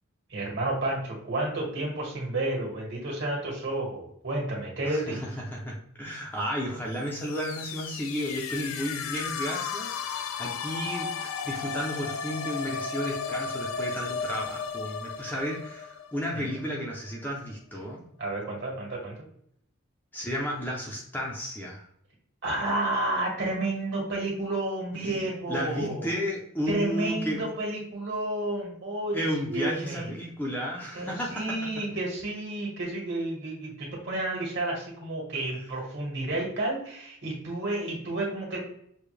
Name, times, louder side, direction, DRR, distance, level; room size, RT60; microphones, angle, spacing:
voice 1, 0.3-5.2 16.3-16.6 18.2-19.2 22.4-26.1 26.7-29.2 29.5-30.1 30.9-38.6, right 2 dB, 50° right, -2 dB, 1.8 m, -31 dB
voice 2, 4.8-5.2 5.5-18.0 20.1-21.8 24.9-27.4 29.1-31.7, equal, 10° left, -2 dB, 0.6 m, -33 dB
sound 1, 7.1-16.8, left 6 dB, 70° left, 0.4 m, -34 dB
6.8 x 2.3 x 3.2 m, 0.70 s
head